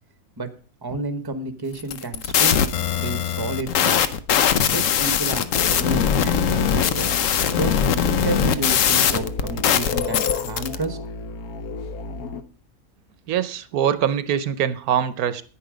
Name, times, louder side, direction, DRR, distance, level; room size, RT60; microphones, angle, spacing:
voice 1, 0.8-2.7 3.0-4.1 4.7-7.1 7.4-7.7 8.2-11.0, right 3 dB, 15° right, 9 dB, 1.1 m, -30 dB
sound 1, 1.8-10.8, left 8 dB, 65° left, 1.1 m, -21 dB
sound 2, 5.5-12.4, left 4 dB, 85° left, 1.4 m, -32 dB
voice 2, 13.3-15.4, right 9 dB, 85° right, 14 dB, 1.3 m, -23 dB
9.9 x 9.8 x 5.1 m, 0.38 s
omnidirectional pair, 1.5 m